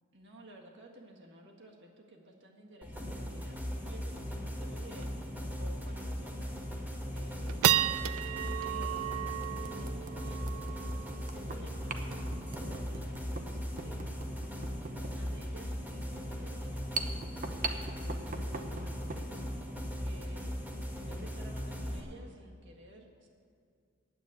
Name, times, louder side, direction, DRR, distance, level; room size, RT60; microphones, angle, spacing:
voice 1, 0.1-5.3 5.5-6.6 7.1-14.0 15.0-19.5 20.0-20.6 20.9-23.3, right 1 dB, 60° right, 0 dB, 1.8 m, -54 dB
sound 1, 2.8-22.0, equal, 10° right, 1.7 m, -38 dB
sound 2, 5.0-5.2 5.7-5.8 6.4-6.7 7.2-13.7, right 12 dB, 85° right, 0.4 m, -34 dB
sound 3, 6.7-6.8 8.1-8.2 8.8-8.9 9.4-19.3, right 4 dB, 40° right, 0.8 m, -42 dB
9.5 x 8.3 x 9.4 m, 2.2 s
head